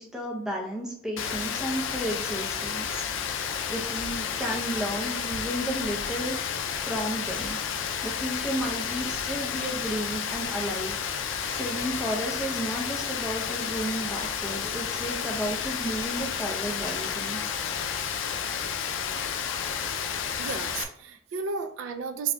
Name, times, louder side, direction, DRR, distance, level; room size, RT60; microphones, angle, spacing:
voice 1, 0.0-3.0 3.3-6.4 6.9-11.0 11.5-17.4, right 1 dB, 5° right, -1 dB, 0.6 m, -33 dB
Rain, 1.2-20.8, left 7 dB, 75° left, 0.4 m, -31 dB
voice 2, 20.4-22.3, right 6 dB, 80° right, 8 dB, 0.4 m, -32 dB
4.8 x 2.7 x 2.2 m, 0.70 s
head